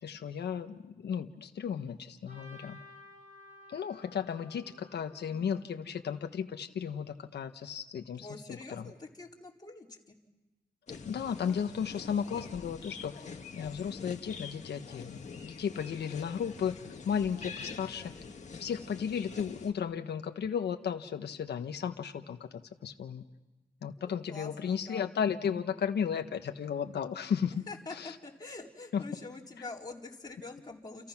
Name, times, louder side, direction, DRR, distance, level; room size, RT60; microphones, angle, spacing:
voice 1, 0.0-2.8 3.7-8.8 11.0-13.1 13.5-16.7 17.0-18.0 18.6-22.5 22.8-23.2 23.8-27.5 28.0-28.1 28.9-29.0, left 7 dB, 70° left, 5 dB, 1.3 m, -34 dB
Trumpet, 2.2-6.4, left 1 dB, 45° right, 7.5 m, -55 dB
voice 2, 5.3-5.7 8.2-10.2 17.4-17.5 17.8-18.2 24.0-25.1 27.7-31.1, left 3 dB, 25° left, -2 dB, 4.4 m, -46 dB
sound 1, 10.9-19.7, left 5 dB, 40° left, 2.0 m, -45 dB
30.0 x 29.5 x 6.1 m, 1.1 s
wide cardioid pair, 125°, 18 cm